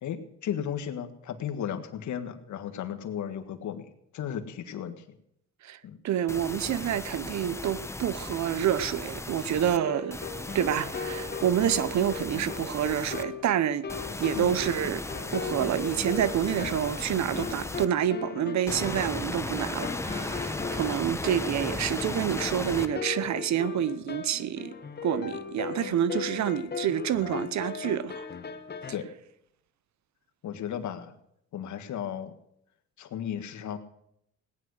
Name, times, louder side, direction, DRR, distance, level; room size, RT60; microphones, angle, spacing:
voice 1, 0.0-5.0 5.8-6.0 14.3-14.5 28.9-29.1 30.4-31.1 31.5-32.3 33.0-33.8, left 9 dB, 70° left, 1.6 m, -35 dB
voice 2, 6.0-10.2 10.5-13.9 14.2-15.1 15.3-24.7 25.0-28.3, right 10 dB, 65° right, 0.9 m, -28 dB
sound 1, 6.3-9.8 10.1-13.2 13.9-17.9 18.7-22.9, left 2 dB, 10° left, 0.9 m, -36 dB
sound 2, 9.7-28.9, left 5 dB, 35° left, 1.4 m, -38 dB
18.0 x 9.8 x 6.4 m
cardioid pair, 90°, 30 cm